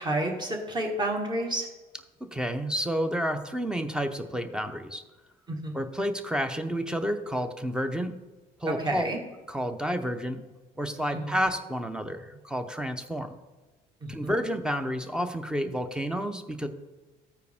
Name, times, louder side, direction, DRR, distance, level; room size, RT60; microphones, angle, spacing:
voice 1, 0.0-1.7 5.5-5.7 8.7-9.2 11.1-11.3 14.0-14.3, right 1 dB, 25° right, 1 dB, 1.6 m, -30 dB
voice 2, 2.2-5.0 5.7-8.2 8.6-9.1 9.5-10.4 10.8-13.4 14.1-16.7, equal, 5° right, 8 dB, 0.7 m, -30 dB
13.5 x 4.6 x 3.6 m, 1.2 s
cardioid pair, 110°, 17 cm